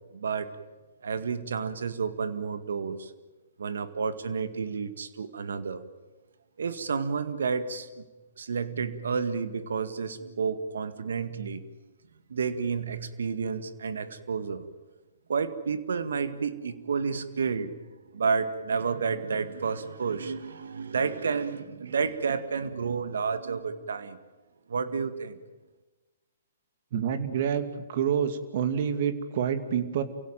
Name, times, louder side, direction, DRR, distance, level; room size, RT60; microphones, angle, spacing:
voice 1, 0.1-0.6 1.0-3.1 3.6-5.8 6.6-8.1 8.4-11.6 12.3-14.7 15.3-24.2 24.7-25.4, right 5 dB, 75° right, 11 dB, 1.9 m, -30 dB
voice 2, 26.9-30.0, right 8 dB, 55° right, 10 dB, 2.5 m, -28 dB
28.5 x 17.0 x 9.1 m, 1.2 s
hypercardioid pair, 130°, 0 cm